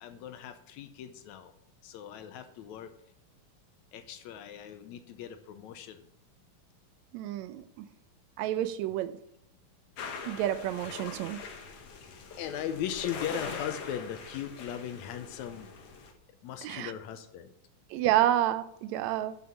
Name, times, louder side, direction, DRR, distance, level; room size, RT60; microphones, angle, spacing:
voice 1, 0.0-1.5 1.8-2.9 3.9-6.0 12.4-15.7 16.4-17.5, left 10 dB, 80° left, 9 dB, 2.0 m, -38 dB
voice 2, 7.1-7.9 8.4-9.2 10.3-11.4 16.6-16.9 17.9-19.4, right 13 dB, 80° right, 13 dB, 1.8 m, -29 dB
sound 1, 10.0-16.1, left 5 dB, 60° left, 1.9 m, -42 dB
7.2 x 6.1 x 7.2 m, 0.73 s
omnidirectional pair, 3.4 m